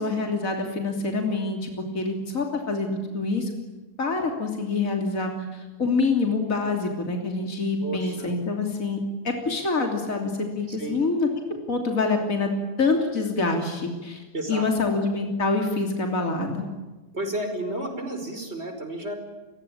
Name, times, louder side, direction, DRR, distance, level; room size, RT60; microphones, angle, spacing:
voice 1, 0.0-3.5 4.0-9.0 9.2-11.3 11.7-12.5 12.8-16.7, left 3 dB, 55° left, 3 dB, 3.6 m, -26 dB
voice 2, 7.8-8.3 10.7-11.0 14.3-14.7 17.1-19.1, right 1 dB, 40° right, 7 dB, 5.4 m, -32 dB
29.0 x 22.5 x 8.9 m, 1.2 s
omnidirectional pair, 1.6 m